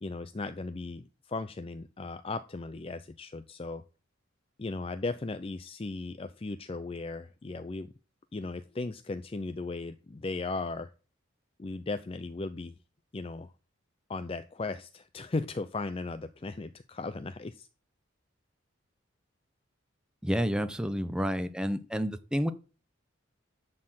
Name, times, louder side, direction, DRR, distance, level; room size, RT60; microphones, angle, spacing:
voice 1, 0.0-3.8 4.6-7.9 8.3-10.9 11.6-12.8 13.1-13.5 14.1-17.7, left 3 dB, 30° left, 12 dB, 0.4 m, -37 dB
voice 2, 20.2-22.5, equal, 5° right, 10 dB, 0.7 m, -30 dB
11.0 x 4.4 x 7.6 m, 0.36 s
head